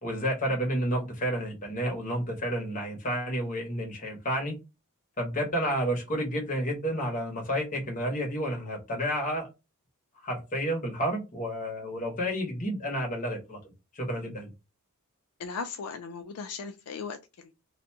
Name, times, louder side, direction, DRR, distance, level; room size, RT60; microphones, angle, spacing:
voice 1, 0.0-4.6 5.2-9.5 10.2-13.6 13.9-14.5, equal, 35° left, 1.0 m, -30 dB
voice 2, 15.4-17.5, left 5 dB, 75° left, 0.4 m, -37 dB
2.5 x 2.2 x 2.6 m
head